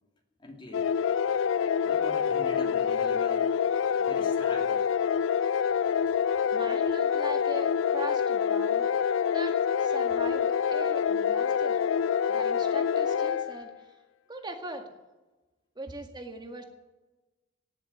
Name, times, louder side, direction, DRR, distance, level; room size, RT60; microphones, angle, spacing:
voice 1, 0.4-0.9 1.8-4.9, left 1 dB, 25° left, 1 dB, 2.6 m, -44 dB
sound 1, 0.7-13.7, left 7 dB, 85° left, 0.4 m, -26 dB
voice 2, 6.5-8.9 9.3-11.8 12.3-13.7 14.3-14.8 15.8-16.6, right 2 dB, 25° right, 4 dB, 1.9 m, -40 dB
18.0 x 7.5 x 8.0 m, 1.1 s
head